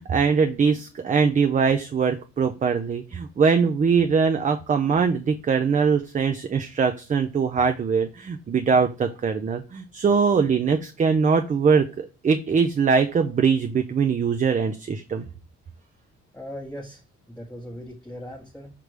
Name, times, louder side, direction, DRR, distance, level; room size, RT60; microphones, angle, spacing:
voice 1, 0.0-15.2, right 5 dB, 25° right, 7 dB, 0.4 m, -22 dB
voice 2, 16.3-18.7, equal, 5° left, -3 dB, 1.0 m, -39 dB
5.2 x 3.2 x 3.2 m, 0.34 s
cardioid pair, 90°, 30 cm